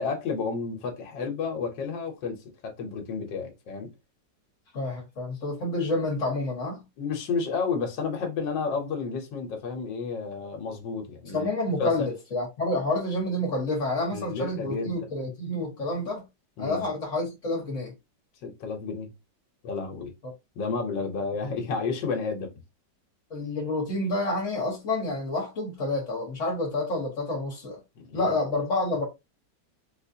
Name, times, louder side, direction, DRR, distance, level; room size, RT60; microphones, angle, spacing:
voice 1, 0.0-3.9 7.0-11.5 11.8-12.1 14.1-15.0 16.6-16.8 18.4-19.1 19.6-20.1 20.6-22.5 28.0-28.3, left 5 dB, 80° left, 1.6 m, -31 dB
voice 2, 4.7-6.8 11.3-16.2 16.6-17.9 23.3-27.8 28.1-29.0, left 2 dB, 45° left, 1.6 m, -29 dB
4.1 x 2.5 x 2.7 m
omnidirectional pair, 2.0 m